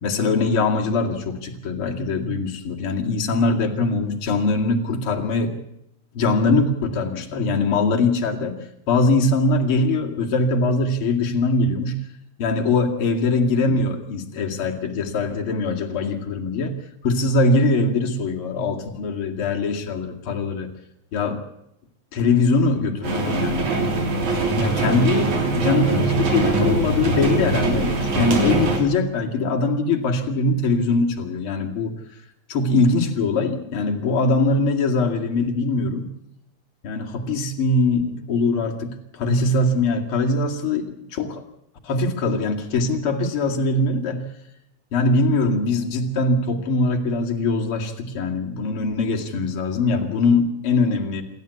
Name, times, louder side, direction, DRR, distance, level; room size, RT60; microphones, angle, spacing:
voice 1, 0.0-5.5 6.1-8.6 8.9-12.0 12.4-16.8 17.0-20.7 21.1-21.4 22.1-23.6 24.1-31.9 32.5-36.1 36.8-40.8 41.1-41.4 41.8-44.3 44.9-51.2, left 3 dB, 50° left, 1 dB, 3.1 m, -22 dB
sound 1, 23.0-28.8, right 3 dB, 85° right, 4.9 m, -22 dB
27.5 x 12.5 x 8.2 m, 0.82 s
omnidirectional pair, 3.3 m